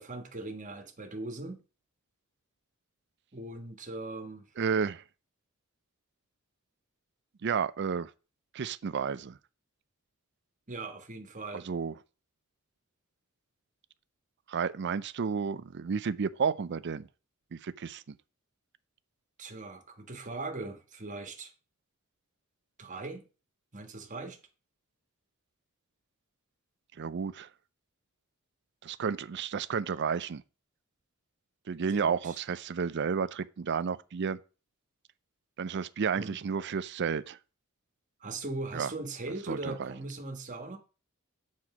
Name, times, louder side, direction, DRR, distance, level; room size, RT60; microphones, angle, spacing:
voice 1, 0.0-1.6 3.3-4.5 10.7-11.7 19.4-21.5 22.8-23.3 23.7-24.4 31.9-32.4 36.2-36.4 38.2-40.8, right 2 dB, 35° right, 1.5 m, -40 dB
voice 2, 4.6-5.0 7.4-8.1 8.5-9.4 11.5-11.9 14.5-17.1 17.5-18.0 27.0-27.5 28.8-30.4 31.7-34.4 35.6-37.4 38.7-38.9 39.5-39.9, right 6 dB, 55° right, 0.4 m, -31 dB
7.9 x 4.3 x 6.0 m
head